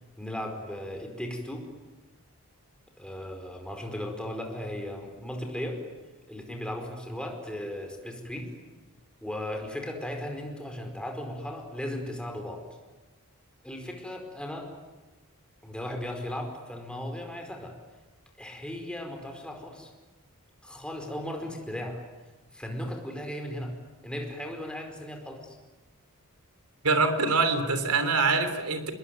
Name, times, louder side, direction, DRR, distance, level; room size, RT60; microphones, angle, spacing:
voice 1, 0.2-1.7 3.0-5.8 6.3-8.5 9.2-12.6 13.6-14.7 15.6-17.8 18.4-19.9 20.6-22.0 22.5-23.7 24.0-25.6, left 1 dB, 5° left, 3 dB, 4.8 m, -36 dB
voice 2, 26.8-28.9, right 4 dB, 85° right, 9 dB, 3.4 m, -24 dB
28.0 x 21.0 x 9.4 m, 1.2 s
head